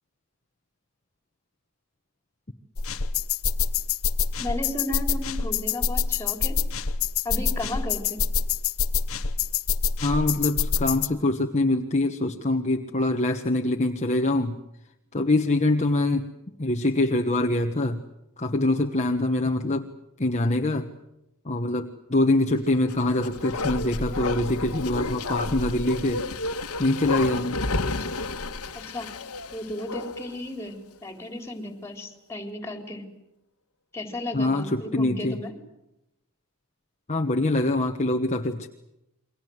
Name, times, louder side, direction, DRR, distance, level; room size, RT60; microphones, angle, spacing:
sound 1, 2.8-11.1, left 6 dB, 65° left, 1.1 m, -26 dB
voice 1, 4.4-6.6 7.2-8.2 28.7-29.1 29.5-33.0 33.9-35.5, left 1 dB, 10° left, 6 dB, 4.0 m, -34 dB
voice 2, 10.0-14.6 15.1-16.2 16.6-18.0 18.4-19.9 20.2-20.9 21.4-26.3 26.8-27.6 34.3-35.4 37.1-38.7, left 2 dB, 30° left, 4 dB, 1.3 m, -24 dB
Bark, 22.8-30.4 30.7-30.8, left 3 dB, 85° left, 1.6 m, -31 dB
29.0 x 23.5 x 8.0 m, 0.88 s
head